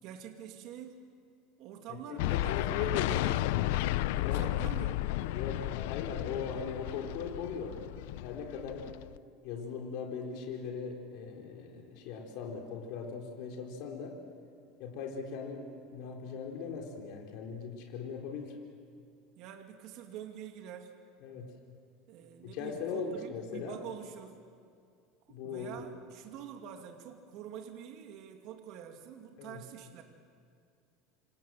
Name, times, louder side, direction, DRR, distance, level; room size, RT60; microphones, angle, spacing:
voice 1, 0.0-1.0 1.6-3.4 4.1-5.3 19.4-20.9 22.1-24.4 25.3-30.0, right 9 dB, 55° right, 4 dB, 2.4 m, -46 dB
voice 2, 1.9-3.7 4.2-4.4 5.3-7.8 8.2-8.9 9.4-14.2 14.8-18.6 21.2-21.5 22.4-23.8 25.3-25.9 29.4-29.6, left 6 dB, 60° left, 1 dB, 3.9 m, -39 dB
sound 1, 2.2-9.2, left 16 dB, 75° left, 0.6 m, -33 dB
27.5 x 26.0 x 7.7 m, 2.4 s
cardioid pair, 155°, 0 cm